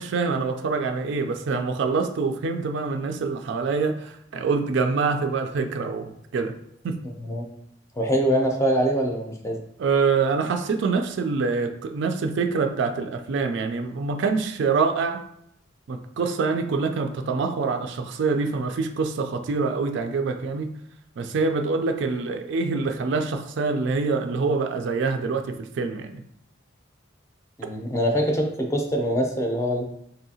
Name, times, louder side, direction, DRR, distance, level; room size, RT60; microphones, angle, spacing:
voice 1, 0.0-6.5 6.8-7.0 9.8-15.2 15.9-20.7 21.2-26.2, right 4 dB, 70° right, 6 dB, 0.4 m, -25 dB
voice 2, 8.0-9.6 27.6-29.8, equal, 15° left, 2 dB, 0.5 m, -24 dB
4.0 x 2.7 x 2.7 m, 0.73 s
head